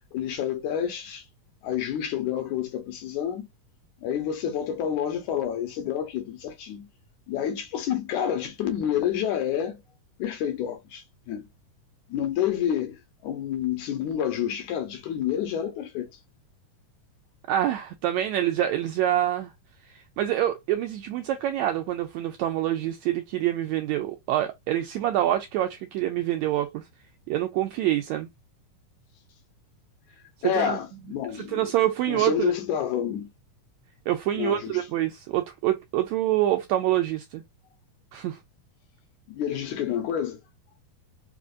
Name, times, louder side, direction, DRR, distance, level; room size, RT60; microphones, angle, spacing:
voice 1, 0.1-1.2 1.6-3.5 4.0-6.9 7.3-9.8 10.2-11.5 12.1-16.1 30.4-31.7 32.1-33.3 34.4-34.8 39.3-40.4, left 9 dB, 75° left, 2.1 m, -29 dB
voice 2, 17.5-19.5 19.9-26.8 27.3-28.3 30.4-30.8 31.3-32.5 34.1-37.4 38.1-38.4, right 13 dB, 80° right, 1.6 m, -26 dB
5.0 x 2.4 x 2.4 m
omnidirectional pair, 3.6 m